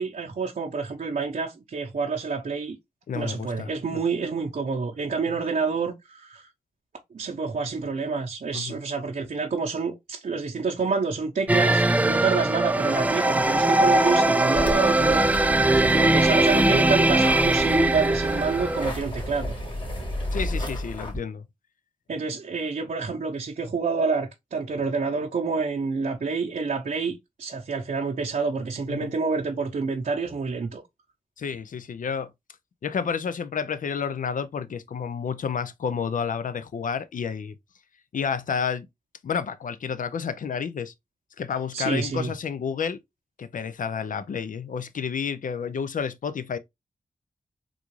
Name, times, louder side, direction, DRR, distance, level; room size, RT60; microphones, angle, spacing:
voice 1, 0.0-2.8 3.1-6.5 7.1-15.5 15.7-19.5 22.1-30.8 41.7-42.3, right 4 dB, 60° right, 0.7 m, -28 dB
voice 2, 3.1-4.0 8.5-8.8 16.3-16.4 20.3-21.5 28.9-29.1 31.4-32.3 32.8-37.5 38.1-38.9 39.2-40.9 41.4-43.0 43.4-46.6, left 6 dB, 65° left, 0.5 m, -30 dB
sound 1, 11.5-18.9, right 2 dB, 10° right, 0.3 m, -21 dB
sound 2, 14.5-21.2, equal, 35° left, 2.0 m, -32 dB
3.7 x 2.4 x 3.0 m
cardioid pair, 45°, 15 cm